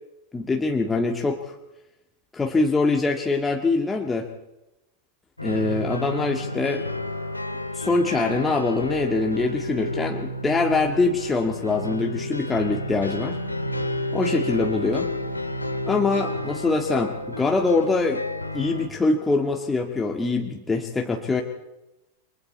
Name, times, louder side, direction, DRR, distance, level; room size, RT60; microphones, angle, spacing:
voice 1, 0.3-1.5 2.3-4.3 5.4-6.9 7.7-13.4 14.1-15.1 15.9-18.2 18.5-21.4, left 3 dB, 10° left, 1 dB, 1.8 m, -24 dB
sound 1, 5.4-18.9, left 1 dB, 85° left, 2.0 m, -30 dB
29.5 x 24.0 x 4.3 m, 0.93 s
figure-of-eight pair, 90°, 0 cm